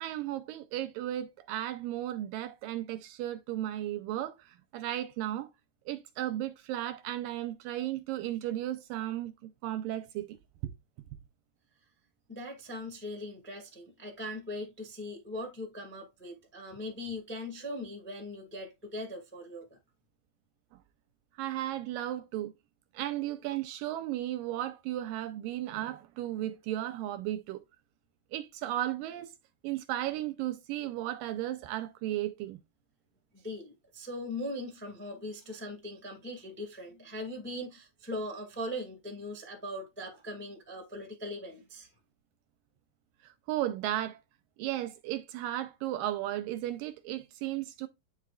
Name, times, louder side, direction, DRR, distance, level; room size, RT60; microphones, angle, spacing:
voice 1, 0.0-5.5 5.9-10.4 10.6-10.7 21.4-22.5 22.9-27.6 28.3-29.3 29.6-32.6 43.2-44.2 44.6-47.9, right 13 dB, 80° right, 2.2 m, -35 dB
voice 2, 12.3-19.7 33.3-41.9, left 1 dB, 5° left, 1.0 m, -40 dB
9.7 x 5.7 x 2.4 m
omnidirectional pair, 4.3 m